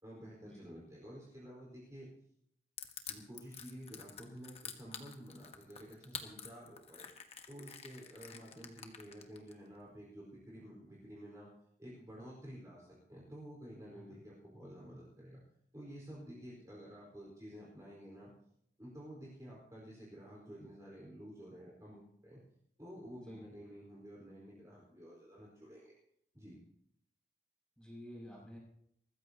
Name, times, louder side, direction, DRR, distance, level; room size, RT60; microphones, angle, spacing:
voice 1, 0.0-2.1 3.1-7.1 7.5-11.5 11.8-15.4 15.7-18.3 18.8-22.4 22.8-26.0 26.3-26.6, equal, 20° right, -5 dB, 4.6 m, -51 dB
Crushing, 2.8-9.5, left 7 dB, 35° left, 1.2 m, -47 dB
voice 2, 27.8-28.6, equal, 5° left, -4 dB, 6.4 m, -51 dB
23.5 x 14.5 x 2.9 m, 0.74 s
head